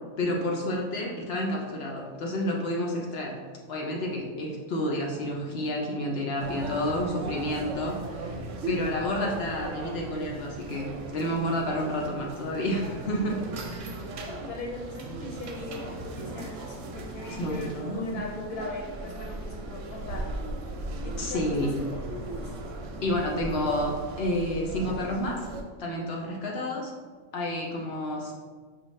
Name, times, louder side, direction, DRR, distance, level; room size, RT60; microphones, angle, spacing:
voice 1, 0.2-3.4 3.7-8.4 8.7-13.4 13.7-14.0 17.3-18.2 21.2-21.8 23.0-25.5 25.8-26.9 27.3-28.3, left 1 dB, 60° left, -1 dB, 0.7 m, -30 dB
sound 1, 6.4-25.6, right 2 dB, 70° right, 0.9 m, -38 dB
voice 2, 13.4-14.0 14.3-20.3 21.0-21.7 22.3-22.5, left 2 dB, 85° left, -1 dB, 1.1 m, -39 dB
4.9 x 2.3 x 3.1 m, 1.5 s
omnidirectional pair, 1.5 m